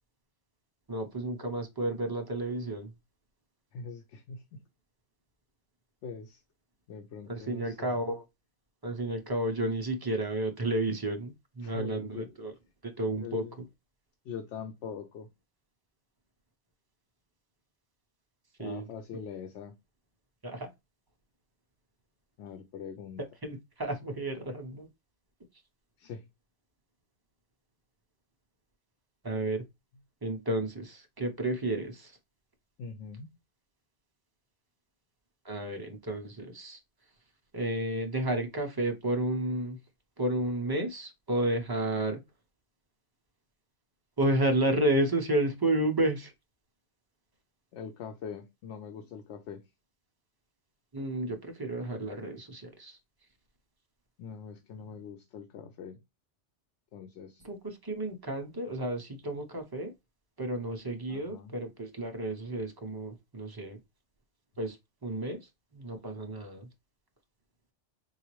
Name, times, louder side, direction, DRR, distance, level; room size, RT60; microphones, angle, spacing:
voice 1, 0.9-2.9 7.3-8.2 8.8-12.5 12.8-13.4 18.6-18.8 20.4-20.7 23.4-24.9 29.2-29.6 30.2-32.1 35.4-36.8 37.5-39.8 40.2-42.2 44.2-46.3 50.9-53.0 57.4-59.9 60.4-63.8 64.6-64.8 65.0-65.4 65.7-66.7, right 1 dB, 30° right, 0.4 m, -31 dB
voice 2, 3.7-4.6 6.0-6.4 6.9-8.1 11.6-12.3 13.1-13.6 14.2-15.3 18.6-19.8 22.4-23.2 26.0-26.2 32.8-33.3 47.7-49.6 54.2-56.0 56.9-57.4 61.1-61.6, left 6 dB, 85° left, 0.9 m, -43 dB
3.9 x 2.3 x 3.0 m
omnidirectional pair, 1.2 m